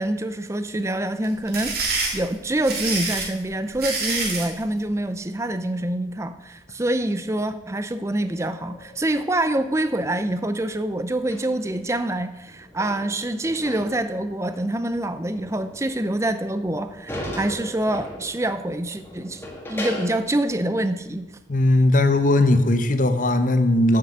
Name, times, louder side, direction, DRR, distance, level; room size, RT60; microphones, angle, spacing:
voice 1, 0.0-19.4 19.7-21.3, right 1 dB, 15° right, 11 dB, 0.5 m, -26 dB
sound 1, 1.2-4.5, right 4 dB, 50° right, 2.4 m, -27 dB
sound 2, 8.2-12.1 12.4-20.2, left 1 dB, 10° left, 1.6 m, -38 dB
voice 2, 21.5-24.0, left 1 dB, 40° left, 9 dB, 0.9 m, -18 dB
8.1 x 7.6 x 7.8 m, 0.99 s
head